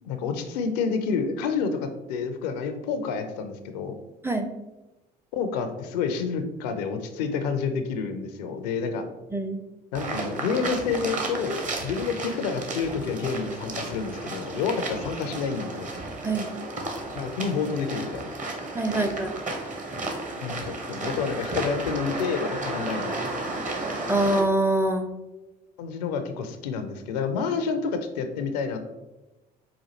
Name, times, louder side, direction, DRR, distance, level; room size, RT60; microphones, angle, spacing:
voice 1, 0.0-3.9 5.3-9.0 9.9-15.9 17.1-18.5 20.4-23.4 25.8-28.8, left 5 dB, 75° left, 8 dB, 0.5 m, -29 dB
sound 1, 9.9-24.4, right 2 dB, 35° right, 0.8 m, -33 dB
voice 2, 18.7-19.4 24.1-25.1, right 2 dB, 10° right, 6 dB, 0.4 m, -24 dB
5.0 x 2.4 x 2.8 m, 1.0 s
hypercardioid pair, 50°, 21 cm